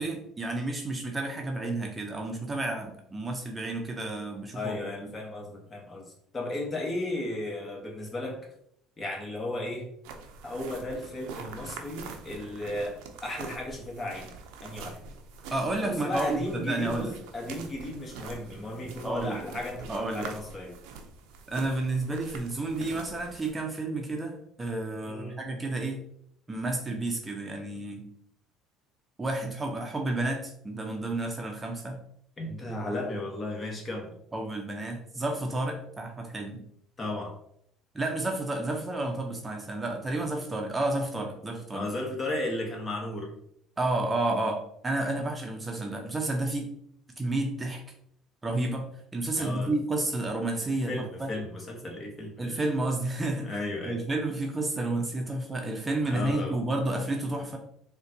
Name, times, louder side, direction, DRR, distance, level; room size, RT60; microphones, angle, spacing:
voice 1, 0.0-4.8 15.5-17.1 19.0-19.4 19.9-20.3 21.5-26.0 26.5-28.1 29.2-32.0 34.3-36.6 37.9-41.9 43.8-46.7 47.2-47.8 48.4-48.8 49.1-51.3 52.4-53.5 53.9-57.6, right 2 dB, 20° right, 2 dB, 0.6 m, -31 dB
voice 2, 4.5-6.1 6.3-8.5 9.0-9.9 10.4-14.3 14.6-15.0 15.8-20.7 25.0-25.4 32.4-34.2 37.0-37.3 41.7-43.3 49.4-49.7 50.9-52.6 53.4-54.0 56.1-56.6, left 1 dB, 30° left, 1 dB, 1.0 m, -35 dB
sound 1, 10.0-23.5, right 5 dB, 75° right, 0.5 m, -45 dB
3.9 x 2.2 x 2.7 m, 0.68 s
supercardioid pair, 80°, 0 cm